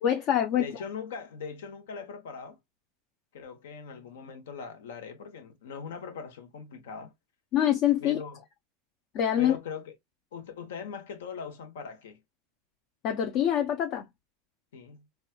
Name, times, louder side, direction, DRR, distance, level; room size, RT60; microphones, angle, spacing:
voice 1, 0.0-0.6 7.5-8.2 9.1-9.6 13.0-14.0, left 10 dB, 50° left, 0.5 m, -25 dB
voice 2, 0.6-2.6 3.3-7.1 8.0-8.4 9.4-9.9 10.3-12.2 14.7-15.1, left 6 dB, 85° left, 1.0 m, -40 dB
4.1 x 2.3 x 2.2 m
supercardioid pair, 115°, 0 cm